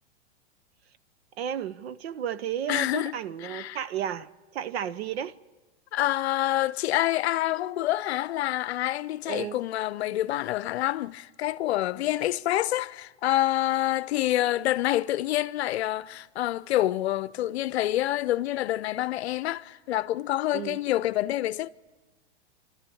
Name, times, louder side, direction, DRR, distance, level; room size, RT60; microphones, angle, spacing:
voice 1, 1.4-5.4 9.3-9.6 20.5-20.8, right 9 dB, 65° right, 0.8 m, -33 dB
voice 2, 2.7-3.8 5.9-21.7, left 14 dB, 70° left, 0.7 m, -27 dB
26.0 x 13.0 x 8.5 m
hypercardioid pair, 140°, 34 cm